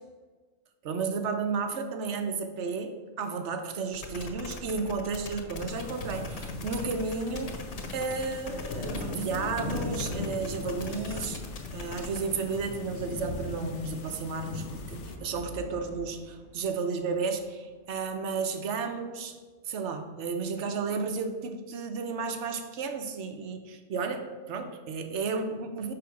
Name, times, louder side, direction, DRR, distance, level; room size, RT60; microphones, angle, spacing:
voice 1, 0.8-7.6 7.9-11.4 11.7-19.4 19.7-25.9, right 4 dB, 90° right, 7 dB, 1.1 m, -33 dB
sound 1, 3.9-12.2, left 3 dB, 40° left, 0.7 m, -41 dB
sound 2, 5.7-15.2, left 3 dB, 85° left, 1.1 m, -38 dB
sound 3, 11.8-20.0, left 1 dB, 25° left, 1.8 m, -53 dB
8.8 x 3.4 x 5.8 m, 1.3 s
omnidirectional pair, 1.2 m